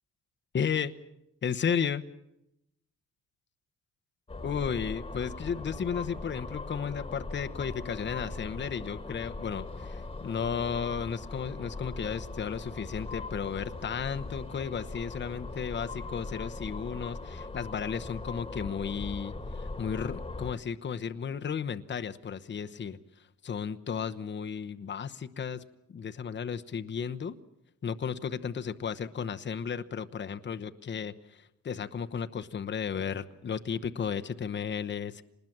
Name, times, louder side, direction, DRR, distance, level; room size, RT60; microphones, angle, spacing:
voice 1, 0.5-0.9 1.4-2.0 4.4-23.0 23.4-25.6 25.9-27.4 27.8-35.2, left 7 dB, 40° left, 9 dB, 1.0 m, -34 dB
sound 1, 4.3-20.5, left 3 dB, 20° left, 1.7 m, -40 dB
26.0 x 20.0 x 7.5 m, 0.84 s
cardioid pair, 90°, 30 cm